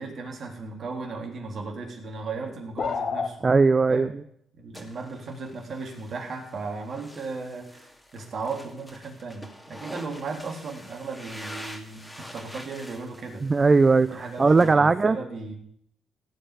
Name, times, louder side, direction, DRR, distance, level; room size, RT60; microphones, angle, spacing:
voice 1, 0.0-3.4 3.9-4.2 4.5-13.4 14.1-15.5, right 4 dB, 50° right, 2 dB, 3.5 m, -36 dB
sound 1, 2.8-3.3, left 5 dB, 50° left, 1.4 m, -28 dB
voice 2, 3.4-4.2 13.4-15.2, right 4 dB, 30° right, 13 dB, 0.5 m, -19 dB
sound 2, 4.7-14.7, left 1 dB, 5° left, 2.5 m, -46 dB
17.0 x 5.7 x 9.9 m, 0.71 s
cardioid pair, 90°, 0 cm